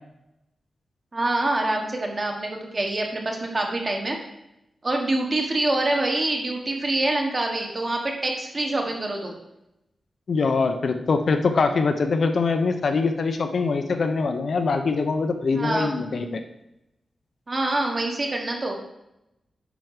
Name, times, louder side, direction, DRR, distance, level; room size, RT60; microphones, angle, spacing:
voice 1, 1.1-4.2 4.8-9.3 15.5-16.0 17.5-18.7, right 2 dB, 30° right, 1 dB, 1.5 m, -25 dB
voice 2, 10.3-16.4, left 4 dB, 50° left, 7 dB, 0.7 m, -23 dB
9.1 x 6.0 x 4.9 m, 0.87 s
wide cardioid pair, 175°, 0 cm